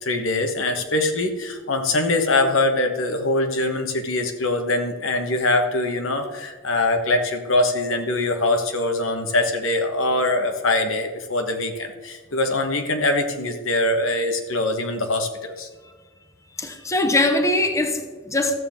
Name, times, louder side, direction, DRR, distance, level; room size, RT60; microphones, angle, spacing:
voice 1, 0.0-15.7, left 2 dB, 85° left, 5 dB, 1.2 m, -23 dB
voice 2, 16.6-18.5, left 2 dB, 15° left, 7 dB, 0.7 m, -21 dB
13.5 x 7.3 x 3.6 m, 1.4 s
head